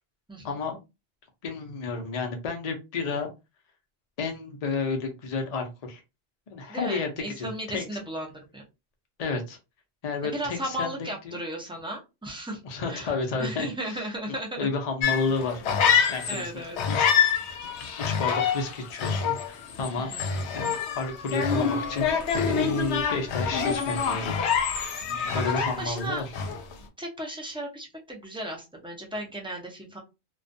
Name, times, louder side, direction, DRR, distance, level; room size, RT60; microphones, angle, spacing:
voice 1, 0.4-0.8 1.4-3.3 4.2-6.0 6.5-7.1 7.4-7.8 9.2-9.6 10.0-11.0 11.2-11.4 12.6-15.6 16.1-16.5 16.9-17.1 18.0-24.3 25.3-26.2, left 4 dB, 45° left, 3 dB, 0.6 m, -31 dB
voice 2, 6.7-8.6 10.2-12.6 12.9-13.1 13.4-14.7 16.3-16.8 20.0-20.3 25.2-26.2 27.0-30.0, right 1 dB, 5° right, -1 dB, 0.4 m, -35 dB
sound 1, 15.0-16.5 16.8-26.0 26.3-26.7, left 7 dB, 85° left, 0.9 m, -26 dB
2.3 x 2.2 x 2.6 m, 0.26 s
omnidirectional pair, 1.1 m